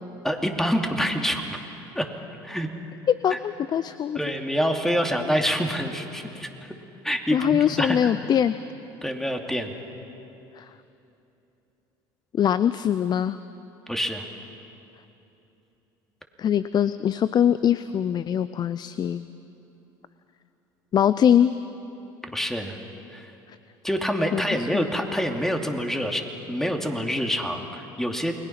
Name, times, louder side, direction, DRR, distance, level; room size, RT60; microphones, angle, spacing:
voice 1, 0.2-1.6 1.9-2.1 2.4-2.7 3.3-3.4 4.1-6.7 7.0-8.1 9.0-9.7 13.9-14.3 22.3-22.8 23.1-23.3 23.8-28.3, equal, 5° left, 3 dB, 2.7 m, -26 dB
voice 2, 3.2-4.2 7.3-8.5 10.6-10.7 12.3-13.4 16.4-19.3 20.9-21.5 24.3-24.4 24.7-24.8, left 9 dB, 40° left, 14 dB, 0.6 m, -22 dB
29.0 x 21.0 x 5.9 m, 2.9 s
hypercardioid pair, 80°, 11 cm